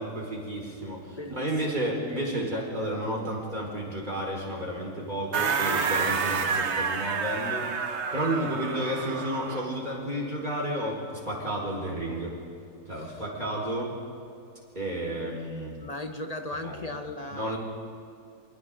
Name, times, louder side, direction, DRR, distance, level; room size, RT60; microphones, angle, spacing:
voice 1, 0.0-7.7 8.1-11.0 11.2-12.3 12.9-13.9 14.7-15.7 16.6-16.9 17.3-17.6, right 1 dB, 30° right, -2 dB, 4.7 m, -31 dB
voice 2, 1.1-1.8 12.9-13.2 15.8-17.6, left 2 dB, 30° left, 6 dB, 0.8 m, -37 dB
sound 1, 5.3-9.7, right 5 dB, 50° right, 1.2 m, -29 dB
28.0 x 25.0 x 3.8 m, 2.6 s
omnidirectional pair, 1.6 m